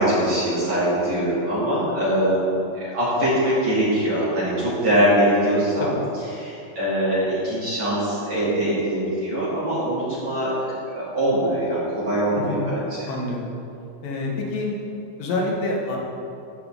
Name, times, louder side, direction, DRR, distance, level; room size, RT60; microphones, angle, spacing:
voice 1, 0.0-5.9 6.3-10.5 10.9-13.1, right 1 dB, 45° right, -11 dB, 3.7 m, -22 dB
voice 2, 13.1-13.5 14.0-14.7 15.2-16.0, left 2 dB, 65° left, -2 dB, 3.1 m, -27 dB
16.0 x 9.3 x 3.8 m, 2.7 s
omnidirectional pair, 4.6 m